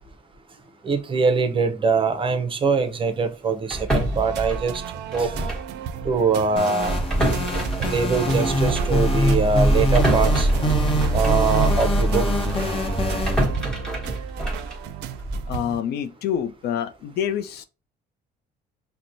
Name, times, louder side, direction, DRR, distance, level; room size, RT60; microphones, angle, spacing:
voice 1, 0.8-4.8 5.1-5.3 6.0-6.9 7.8-10.5 11.1-12.3, right 4 dB, 30° right, 0.6 m, -23 dB
sound 1, 3.7-5.8 6.0-6.2 6.8-12.1 12.5-15.6, right 1 dB, 5° left, 1.2 m, -27 dB
sound 2, 3.9-15.8, right 10 dB, 85° right, 0.4 m, -34 dB
sound 3, 6.6-13.4, equal, 30° left, 1.0 m, -22 dB
voice 2, 15.5-17.6, left 9 dB, 70° left, 0.5 m, -27 dB
5.9 x 2.1 x 2.6 m
cardioid pair, 110°, 17 cm